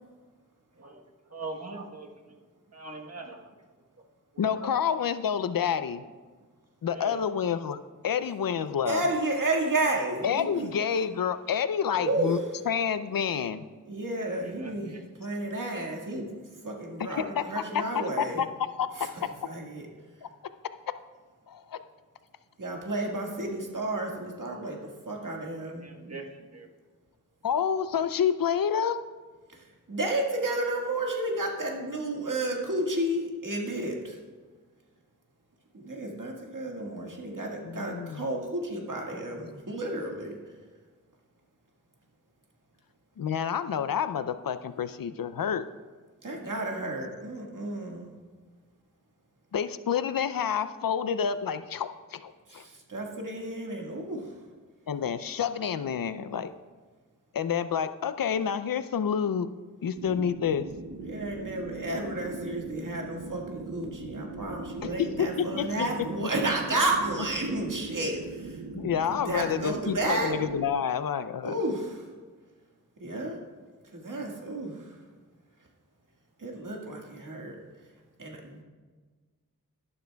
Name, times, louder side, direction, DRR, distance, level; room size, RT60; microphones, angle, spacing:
voice 1, 0.8-2.4 2.7-3.4 4.3-4.7 6.9-7.2 14.2-15.3 25.6-26.7, right 3 dB, 50° right, 2 dB, 1.2 m, -43 dB
voice 2, 4.4-6.0 6.8-7.8 8.0-9.0 10.2-12.4 12.7-13.6 17.0-18.5 18.8-18.9 21.5-21.8 27.4-29.0 37.6-38.3 43.2-45.6 49.5-52.6 54.9-56.5 57.3-59.5 59.8-60.7 64.8-65.9 66.2-66.3 68.7-71.6, left 8 dB, 80° left, 12 dB, 0.5 m, -29 dB
voice 3, 8.9-10.7 12.0-12.3 13.9-14.9 15.2-16.3 16.6-18.4 19.0-19.9 22.6-24.8 25.1-25.8 29.9-34.1 35.7-40.3 46.2-48.1 52.5-52.6 52.9-54.2 61.0-68.9 69.3-70.3 71.4-72.0 73.0-73.4 73.9-74.7 76.4-77.6 78.2-78.6, right 1 dB, 65° right, 0 dB, 1.7 m, -31 dB
sound 1, 60.0-70.7, right 3 dB, 85° right, 0.7 m, -40 dB
12.0 x 11.5 x 2.3 m, 1.4 s
wide cardioid pair, 70°, 34 cm